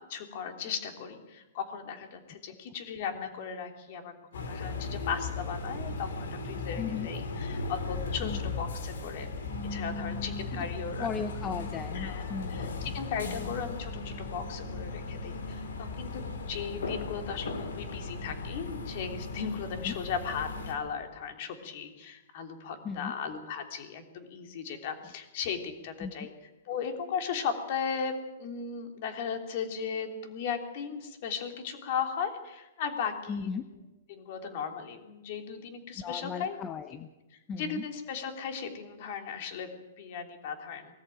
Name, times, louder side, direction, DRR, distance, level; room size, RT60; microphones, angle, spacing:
voice 1, 0.0-9.3 9.7-11.1 11.9-26.3 26.6-33.5 34.1-36.6 37.6-40.9, left 6 dB, 45° left, 5 dB, 3.2 m, -36 dB
sound 1, 4.3-20.7, left 3 dB, 85° left, 4.3 m, -37 dB
voice 2, 6.8-7.1 8.2-8.4 11.0-12.9 13.3-13.4 19.8-19.9 22.8-23.1 26.0-26.3 33.3-33.6 36.0-37.1 37.5-37.8, left 7 dB, 20° left, 10 dB, 0.7 m, -36 dB
20.5 x 14.0 x 9.2 m, 1.0 s
hypercardioid pair, 160°, 0 cm